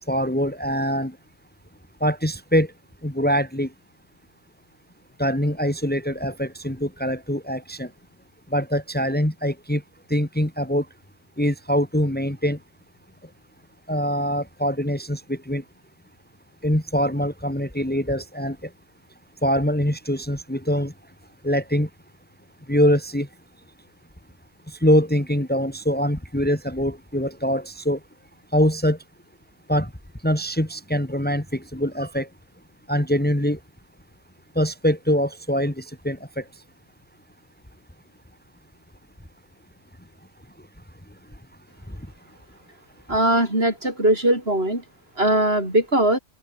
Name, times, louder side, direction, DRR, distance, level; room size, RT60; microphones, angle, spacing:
voice 1, 0.1-1.1 2.0-2.7 3.0-3.7 5.2-7.9 8.5-9.8 10.1-10.9 11.4-12.6 13.9-15.6 16.6-18.6 19.4-20.9 21.4-21.9 22.7-23.3 24.8-28.0 28.5-29.0 29.7-29.9 30.2-32.3 32.9-33.6 34.6-36.4, equal, 5° left, 2.6 m, -23 dB
voice 2, 43.1-44.8 45.2-46.2, right 1 dB, 50° right, 8.2 m, -20 dB
open air
omnidirectional pair, 1.4 m